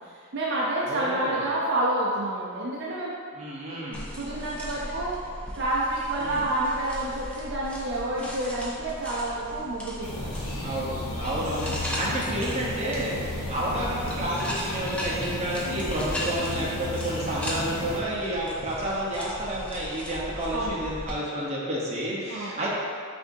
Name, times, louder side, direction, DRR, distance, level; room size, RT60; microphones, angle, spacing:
voice 1, 0.0-3.1 4.1-5.2 5.6-10.5 20.5-20.8 22.3-22.6, right 1 dB, 60° right, -6 dB, 0.5 m, -29 dB
voice 2, 0.8-1.4 3.3-4.1 6.2-6.4 10.6-22.7, right 1 dB, 30° right, -6 dB, 0.8 m, -30 dB
sound 1, 3.9-21.2, equal, 5° left, 0.5 m, -37 dB
sound 2, 10.0-18.0, left 1 dB, 90° left, 0.8 m, -34 dB
6.2 x 2.6 x 2.6 m, 2.2 s
head